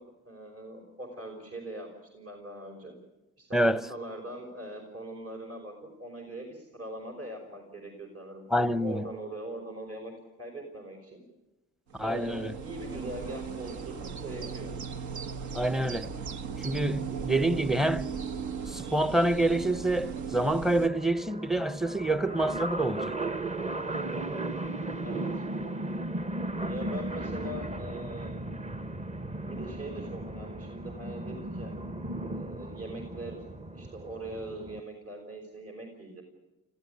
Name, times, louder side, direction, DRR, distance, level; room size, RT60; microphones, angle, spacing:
voice 1, 0.2-3.0 3.4-10.1 10.4-11.2 12.0-14.7 24.1-24.5 25.0-25.4 26.6-28.3 29.4-31.8 32.2-33.4 33.7-36.2, right 1 dB, 50° right, 5.5 m, -41 dB
voice 2, 8.5-9.0 12.0-12.5 15.5-16.1 16.6-18.1 18.7-23.1, right 1 dB, ahead, 0.8 m, -27 dB
sound 1, 11.9-20.9, right 6 dB, 70° right, 1.3 m, -37 dB
sound 2, 19.8-34.8, right 2 dB, 20° right, 1.0 m, -36 dB
26.0 x 16.0 x 9.6 m
cardioid pair, 90°, 30 cm